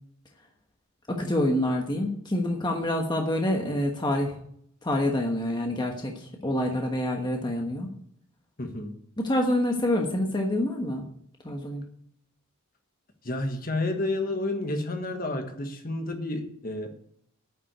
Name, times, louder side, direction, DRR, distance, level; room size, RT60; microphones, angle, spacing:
voice 1, 1.1-4.4 4.8-7.9 9.2-11.0 11.4-11.8, left 1 dB, 20° left, 1.2 m, -27 dB
voice 2, 8.6-9.0 13.2-17.0, left 2 dB, 40° left, 1.5 m, -30 dB
9.4 x 7.3 x 8.2 m
head